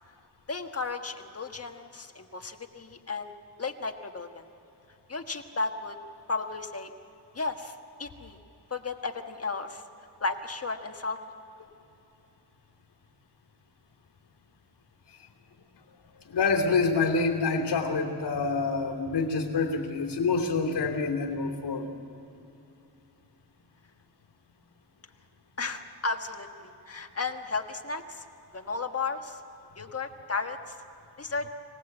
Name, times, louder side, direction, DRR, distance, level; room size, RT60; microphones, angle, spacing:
voice 1, 0.5-3.3 3.6-4.4 5.1-6.0 6.3-6.9 7.3-8.4 8.7-9.8 10.2-11.2 25.6-28.2 28.5-29.4 29.8-30.8 31.2-31.5, left 3 dB, 35° left, 5 dB, 1.5 m, -34 dB
voice 2, 16.2-21.9, left 4 dB, 70° left, 1 dB, 2.9 m, -27 dB
25.0 x 19.0 x 7.9 m, 2.9 s
wide cardioid pair, 110°, 42 cm